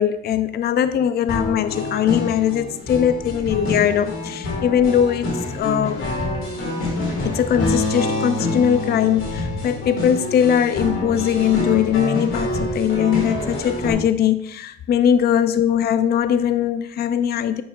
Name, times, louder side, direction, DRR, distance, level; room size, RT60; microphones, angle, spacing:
voice 1, 0.0-5.3 5.5-6.1 7.2-17.6, left 9 dB, 55° left, 12 dB, 0.4 m, -20 dB
sound 1, 1.3-13.9, left 2 dB, 90° left, 2.6 m, -26 dB
9.4 x 6.2 x 2.4 m, 0.70 s
cardioid pair, 90°, 20 cm